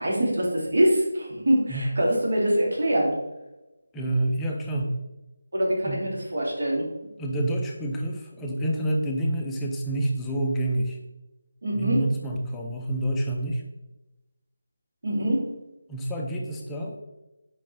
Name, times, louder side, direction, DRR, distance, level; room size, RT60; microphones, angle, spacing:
voice 1, 0.0-3.1 5.5-6.9 11.6-12.0 15.0-15.5, right 1 dB, 60° right, -3 dB, 2.8 m, -24 dB
voice 2, 3.9-5.0 5.9-6.0 7.2-11.0 11.7-13.6 15.9-17.0, right 1 dB, 5° left, -1 dB, 0.6 m, -28 dB
9.0 x 5.4 x 3.3 m, 1.0 s
figure-of-eight pair, 175°, 0 cm